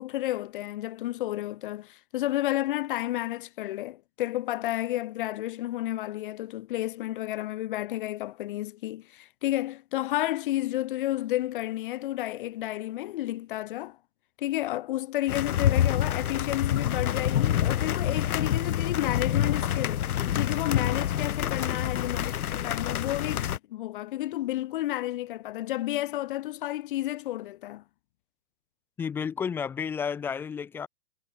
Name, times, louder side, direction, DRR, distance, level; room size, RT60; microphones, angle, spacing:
voice 1, 0.0-14.0 14.4-27.8, left 15 dB, 30° left, 1.3 m, -31 dB
sound 1, 15.3-23.6, left 10 dB, 60° left, 2.8 m, -27 dB
voice 2, 29.0-30.9, left 6 dB, 5° left, 0.8 m, -31 dB
hypercardioid pair, 170°, 49 cm